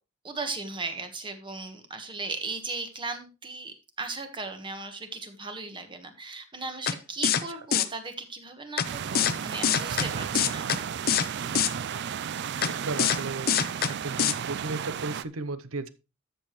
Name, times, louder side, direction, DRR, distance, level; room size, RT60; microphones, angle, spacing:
voice 1, 0.2-10.7, right 3 dB, 25° right, 7 dB, 1.3 m, -37 dB
sound 1, 6.9-7.0 7.2-7.4 7.7-7.8 8.8-8.9 9.1-9.3 9.6-10.1 10.3-10.8 11.1-11.3 11.5-11.7 12.6-12.7 13.0-13.2 13.5-13.9 14.2-14.3, left 8 dB, 45° left, 0.7 m, -23 dB
sound 2, 8.8-15.2, right 7 dB, 55° right, 0.4 m, -33 dB
voice 2, 12.7-13.5 13.9-15.9, right 3 dB, 85° right, 13 dB, 0.8 m, -34 dB
13.0 x 6.8 x 3.1 m, 0.30 s
head